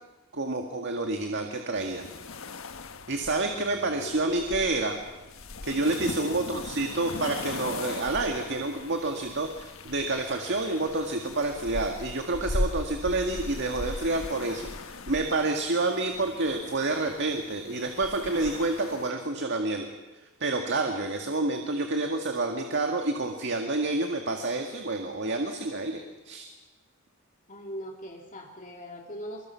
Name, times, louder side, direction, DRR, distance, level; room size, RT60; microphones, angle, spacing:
voice 1, 0.3-2.0 3.1-5.0 5.6-19.9 20.4-26.5, right 2 dB, 60° right, 4 dB, 2.0 m, -29 dB
sound 1, 1.8-19.1, left 2 dB, 70° left, 1.4 m, -39 dB
voice 2, 3.9-4.5 6.2-6.4 27.5-29.5, equal, 40° left, 1 dB, 2.4 m, -41 dB
24.5 x 23.0 x 5.8 m, 1.2 s
head